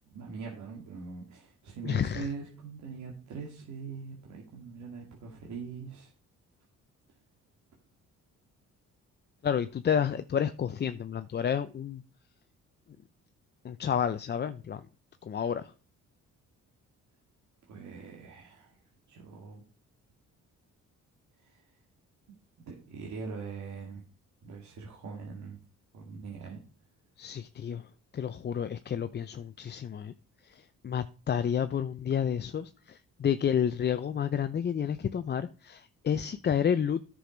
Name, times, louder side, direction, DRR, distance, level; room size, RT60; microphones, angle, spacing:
voice 1, 0.1-6.1 17.7-18.8 19.1-19.6 21.4-21.8 22.6-24.0 24.4-25.6 25.9-26.6, right 5 dB, 65° right, -1 dB, 2.1 m, -42 dB
voice 2, 1.8-2.3 9.4-12.0 13.6-14.9 15.2-15.7 27.2-27.9 28.1-30.1 30.4-37.0, left 8 dB, 35° left, 10 dB, 0.5 m, -30 dB
10.0 x 6.3 x 5.1 m, 0.38 s
cardioid pair, 90°, 30 cm